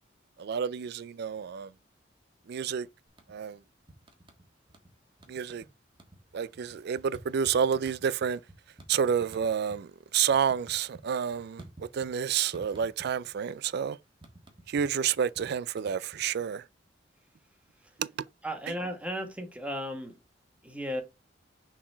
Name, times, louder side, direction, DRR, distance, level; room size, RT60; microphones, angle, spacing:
voice 1, 0.4-1.7 2.5-2.9 3.3-3.6 5.3-5.6 6.3-8.4 8.9-11.6 11.9-14.0 14.7-16.6 18.0-18.1, right 7 dB, 60° right, 0.4 m, -29 dB
sound 1, 3.1-3.6 3.9-4.9 5.2-5.7 5.9-9.8 10.1-12.2 12.5-13.4 13.6-16.5, right 1 dB, 25° right, 1.5 m, -51 dB
voice 2, 18.4-20.2 20.6-21.0, equal, 5° right, 1.5 m, -35 dB
6.2 x 4.1 x 4.4 m
head